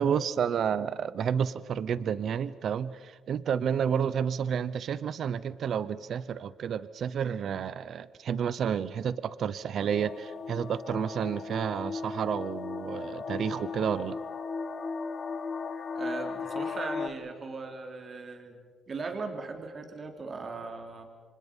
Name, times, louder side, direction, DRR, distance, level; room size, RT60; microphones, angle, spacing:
voice 1, 0.0-14.2, right 8 dB, 65° right, 16 dB, 0.9 m, -30 dB
sound 1, 9.9-17.1, left 4 dB, 45° left, 2.0 m, -36 dB
voice 2, 15.9-21.0, right 4 dB, 40° right, 4 dB, 3.8 m, -39 dB
30.0 x 25.5 x 5.5 m, 1.5 s
cardioid pair, 90°, 0 cm